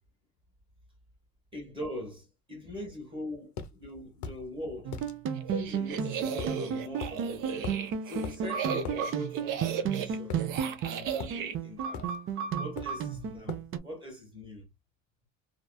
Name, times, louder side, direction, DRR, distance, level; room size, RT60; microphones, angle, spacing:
voice 1, 1.5-4.9 5.5-7.7 8.0-10.4 10.8-12.1 12.6-14.7, left 1 dB, 15° right, 1.3 m, -42 dB
sound 1, 3.6-3.7 4.2-4.4 4.9-5.1 6.4-6.6 7.0-7.2 7.6-7.9 8.2-8.4 8.8-9.0 10.3-10.8 11.2-11.4 11.9-12.2 12.8-13.0 13.5-13.7, left 6 dB, 55° left, 0.6 m, -39 dB
sound 2, 4.8-13.8, right 7 dB, 40° right, 0.4 m, -33 dB
sound 3, 5.4-11.5, right 7 dB, 65° right, 0.7 m, -36 dB
2.9 x 2.3 x 2.2 m
cardioid pair, 150°, 35 cm